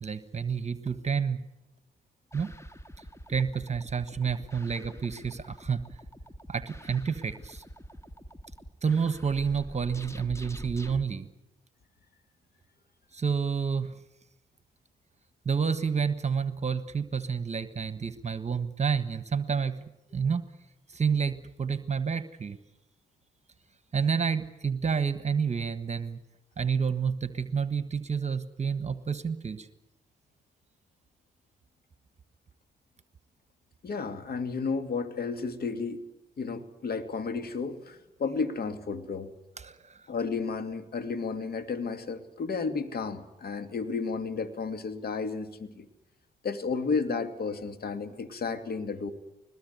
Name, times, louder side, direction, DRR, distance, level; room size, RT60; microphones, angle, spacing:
voice 1, 0.0-1.4 2.3-2.5 3.3-5.8 6.5-7.6 8.8-11.3 13.1-14.0 15.4-19.8 20.1-20.4 20.9-22.6 23.9-26.2 26.6-29.7 39.6-40.0, right 6 dB, 40° right, 12 dB, 1.4 m, -29 dB
sound 1, 2.3-11.0, equal, 15° left, 1.9 m, -46 dB
voice 2, 33.8-36.0 36.4-39.3 40.1-45.9 46.4-49.1, left 4 dB, 60° left, 9 dB, 2.6 m, -32 dB
22.5 x 20.0 x 9.5 m, 0.92 s
supercardioid pair, 50°, 18 cm